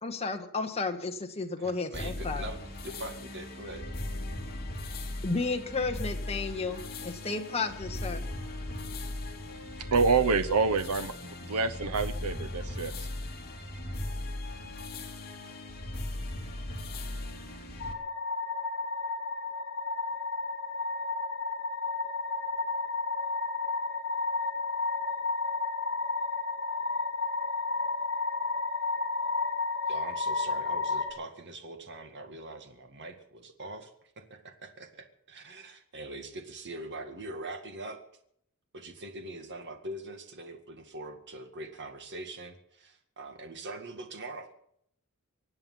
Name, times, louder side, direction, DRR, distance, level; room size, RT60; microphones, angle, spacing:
voice 1, 0.0-2.5 5.2-8.2, left 4 dB, 30° left, 4 dB, 1.6 m, -33 dB
voice 2, 1.6-3.9 29.9-38.0 38.7-44.5, right 2 dB, 55° right, 6 dB, 2.0 m, -43 dB
sound 1, 1.9-17.9, left 1 dB, 45° left, 3.0 m, -38 dB
voice 3, 9.9-11.1 11.4-13.1, right 4 dB, 90° right, 13 dB, 0.8 m, -27 dB
sound 2, 17.8-31.1, left 3 dB, 60° left, 4.2 m, -32 dB
24.5 x 8.9 x 5.7 m, 0.68 s
head